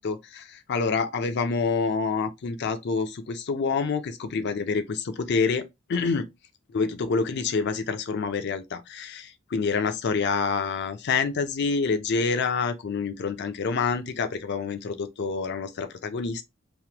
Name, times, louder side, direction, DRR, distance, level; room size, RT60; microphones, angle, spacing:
voice 1, 0.0-5.6 5.9-6.3 6.7-16.4, left 5 dB, 55° left, 0.4 m, -27 dB
3.1 x 2.1 x 2.8 m
head